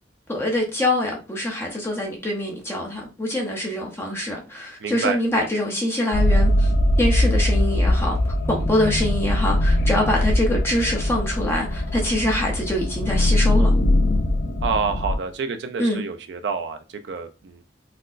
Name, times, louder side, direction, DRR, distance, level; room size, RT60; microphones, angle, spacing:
voice 1, 0.3-6.7 7.0-8.2 8.5-13.7 15.8-16.0, left 1 dB, 15° left, 0.7 m, -24 dB
voice 2, 4.8-5.2 14.6-17.6, right 5 dB, 70° right, 0.4 m, -28 dB
sound 1, 6.1-15.2, left 1 dB, 55° left, 0.4 m, -21 dB
4.1 x 2.0 x 2.5 m
head